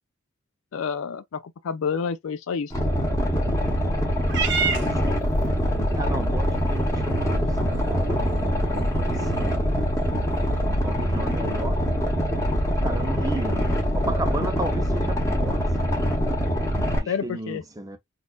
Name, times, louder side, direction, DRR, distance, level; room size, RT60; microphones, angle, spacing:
voice 1, 0.7-2.7 17.1-17.6, left 6 dB, 80° left, 0.4 m, -29 dB
Boat Water vehicle, 2.7-17.0, equal, 15° left, 1.0 m, -24 dB
Purr / Meow, 4.3-10.8, right 4 dB, 60° right, 0.9 m, -33 dB
voice 2, 4.5-5.1 5.9-10.0 10.6-11.9 12.8-16.1 16.9-18.0, right 2 dB, 15° right, 0.5 m, -35 dB
4.1 x 2.4 x 2.3 m
head